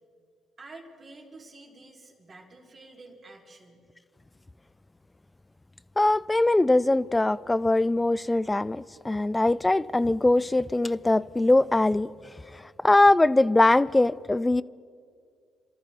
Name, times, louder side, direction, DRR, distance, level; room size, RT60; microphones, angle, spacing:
voice 1, 0.6-3.9, right 2 dB, 40° right, 3.6 m, -49 dB
voice 2, 6.0-12.1 12.8-14.6, left 2 dB, 15° left, 0.4 m, -22 dB
28.5 x 13.5 x 3.7 m
hypercardioid pair, 55°, 0 cm